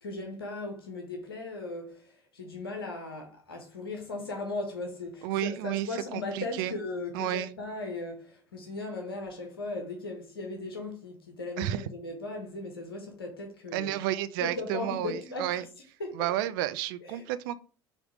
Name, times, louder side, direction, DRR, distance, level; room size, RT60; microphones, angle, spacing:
voice 1, 0.0-14.0 14.4-15.6 16.0-16.3 17.0-17.2, left 2 dB, 85° left, 1.4 m, -37 dB
voice 2, 5.2-6.7 7.1-7.5 11.6-11.8 13.7-15.6 16.1-17.6, right 12 dB, 70° right, 0.6 m, -31 dB
7.4 x 3.4 x 4.9 m
hypercardioid pair, 65°, 12 cm